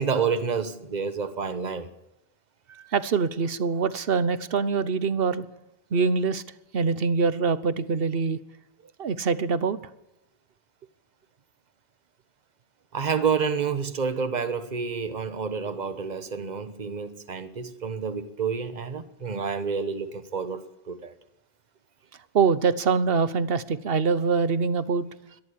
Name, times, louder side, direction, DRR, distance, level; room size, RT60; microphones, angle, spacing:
voice 1, 0.0-1.9 2.7-2.9 12.9-21.1, right 6 dB, 45° right, 1.3 m, -29 dB
voice 2, 2.9-5.4 5.9-6.4 6.7-8.4 9.0-9.8 22.3-25.1, right 5 dB, 65° right, 1.2 m, -24 dB
22.5 x 13.5 x 8.5 m
omnidirectional pair, 1.1 m